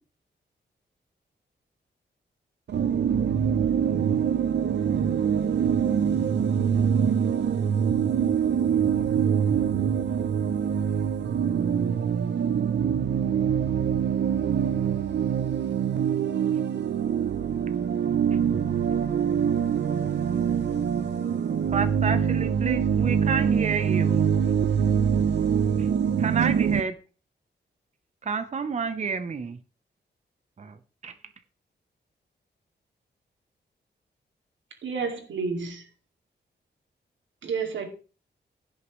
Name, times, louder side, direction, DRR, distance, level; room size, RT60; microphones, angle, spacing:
voice 1, 2.7-26.8, right 8 dB, 70° right, 0.6 m, -24 dB
voice 2, 21.7-24.5 25.8-25.9 26.2-26.9 28.2-29.6 30.6-30.8 31.0-31.1, right 5 dB, 40° right, 0.8 m, -29 dB
voice 3, 34.8-35.9 37.4-37.9, right 5 dB, 85° right, 2.3 m, -30 dB
16.0 x 6.5 x 3.1 m
wide cardioid pair, 110°, 19 cm